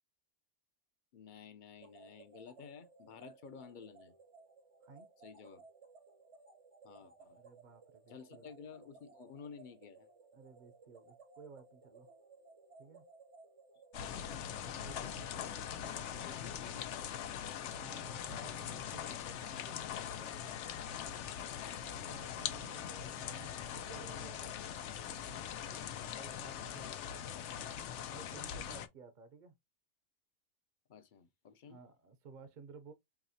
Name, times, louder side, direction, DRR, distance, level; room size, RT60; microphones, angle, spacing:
voice 1, 1.1-4.1 5.2-5.6 6.8-7.4 8.1-10.1 14.1-14.3 16.3-17.1 21.6-21.9 25.7-26.0 28.3-28.5 30.9-31.8, left 6 dB, 55° left, 0.7 m, -53 dB
sound 1, 1.8-16.4, right 4 dB, 85° right, 1.5 m, -60 dB
voice 2, 7.0-8.5 10.3-12.1 12.8-13.0 14.8-15.3 17.7-20.7 21.7-24.5 26.1-27.3 28.1-29.6 31.7-32.9, right 5 dB, 50° right, 0.7 m, -55 dB
sound 2, 13.9-28.9, left 9 dB, 85° left, 0.9 m, -42 dB
4.8 x 3.0 x 2.7 m
omnidirectional pair, 1.2 m